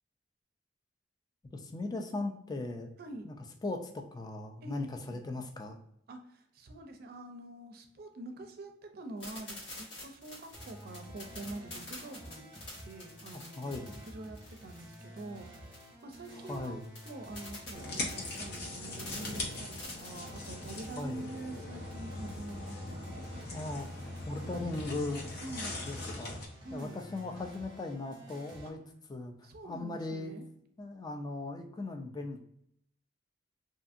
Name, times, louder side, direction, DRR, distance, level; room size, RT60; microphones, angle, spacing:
voice 1, 1.5-2.9 3.2-3.4 3.6-5.8 13.3-13.9 16.3-16.9 21.0-21.3 23.5-23.9 24.3-25.3 25.8-26.4 26.7-28.8 29.1-30.3 30.8-32.4, left 2 dB, 20° left, 4 dB, 0.3 m, -38 dB
voice 2, 4.6-5.2 6.1-12.5 12.8-16.8 17.1-23.3 25.4-25.9 26.6-27.0 28.6-28.7 29.4-30.4, right 2 dB, 55° right, 5 dB, 0.5 m, -46 dB
sound 1, 9.2-21.1, left 1 dB, 85° left, 1.4 m, -47 dB
sound 2, 10.5-28.7, equal, 25° right, 0.8 m, -51 dB
sound 3, 17.7-26.5, left 2 dB, 60° left, 0.7 m, -41 dB
2.6 x 2.6 x 2.5 m, 0.74 s
head